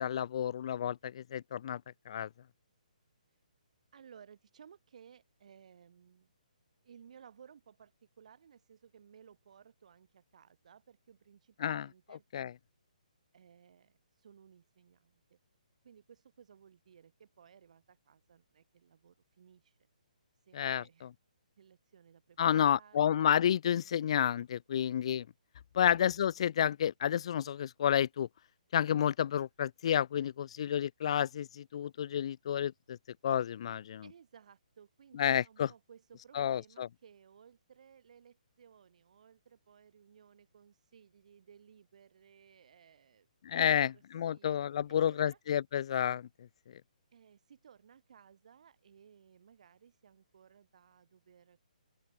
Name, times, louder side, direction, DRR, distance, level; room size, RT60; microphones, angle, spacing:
voice 1, 0.0-2.3 11.6-12.5 20.5-21.1 22.4-25.3 25.7-28.3 28.7-33.0 33.2-34.0 35.1-35.7 36.3-36.9 43.4-46.3, left 9 dB, 45° left, 0.4 m, -30 dB
voice 2, 3.9-6.3 6.8-12.2 13.3-15.4 15.8-19.8 20.4-21.1 21.6-23.2 25.8-26.0 34.0-43.3 43.7-44.0 44.3-44.5 44.9-45.4 47.1-51.6, right 7 dB, 55° right, 4.2 m, -59 dB
open air
hypercardioid pair, 160°, 4 cm